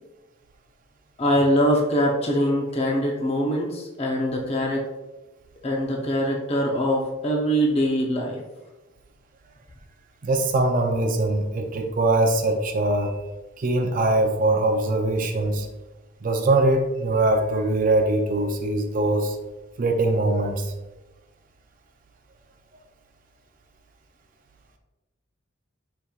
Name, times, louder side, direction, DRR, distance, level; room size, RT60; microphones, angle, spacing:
voice 1, 1.2-4.8 5.6-8.4, equal, 30° left, -1 dB, 0.6 m, -23 dB
voice 2, 10.2-13.1 13.6-15.7 16.2-19.4 19.8-20.7, right 2 dB, 45° right, 4 dB, 0.4 m, -22 dB
5.1 x 4.3 x 2.3 m, 1.1 s
head